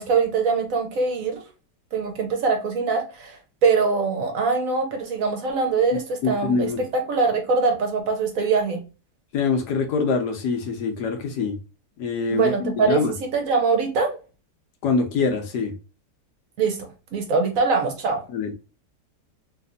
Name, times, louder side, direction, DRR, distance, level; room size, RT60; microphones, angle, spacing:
voice 1, 0.0-1.4 1.9-8.8 12.3-14.2 16.6-18.2, right 4 dB, 60° right, 1.2 m, -23 dB
voice 2, 6.2-6.8 9.3-11.6 12.0-13.1 14.8-15.7 18.3-18.5, left 4 dB, 85° left, 1.4 m, -24 dB
3.3 x 3.1 x 2.4 m
omnidirectional pair, 1.7 m